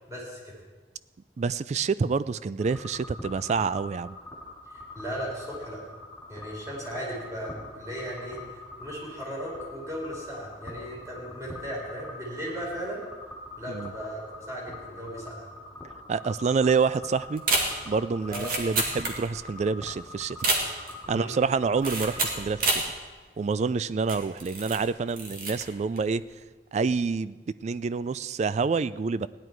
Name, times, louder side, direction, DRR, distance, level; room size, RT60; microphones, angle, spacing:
voice 1, 0.1-0.5 4.7-5.8 6.3-8.4 8.8-13.0 13.6-15.5 18.3-18.5 21.1-21.3, equal, 20° right, -4 dB, 4.3 m, -36 dB
voice 2, 1.4-4.2 13.7-13.9 16.1-17.4 17.9-20.4 21.1-22.8 23.4-26.2 26.7-29.3, right 5 dB, 40° right, 16 dB, 0.3 m, -27 dB
sound 1, 2.6-22.3, left 2 dB, 5° left, 3.3 m, -44 dB
sound 2, 17.4-19.5 19.8-19.9 20.3-21.0 21.8-22.9 23.4-23.5 24.0-24.8 25.1-25.7 26.0-26.2, right 2 dB, 55° right, 2.1 m, -28 dB
16.5 x 11.0 x 4.6 m, 1.3 s
head